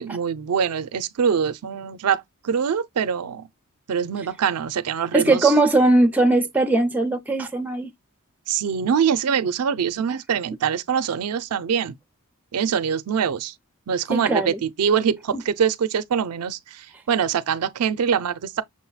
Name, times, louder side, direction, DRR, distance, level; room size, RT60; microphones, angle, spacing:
voice 1, 0.0-3.5 3.9-5.5 8.5-12.0 12.5-13.5 13.9-18.6, right 7 dB, 90° right, 0.5 m, -24 dB
voice 2, 5.1-7.9 14.1-14.6, right 2 dB, 5° right, 0.6 m, -19 dB
6.2 x 2.1 x 4.0 m
head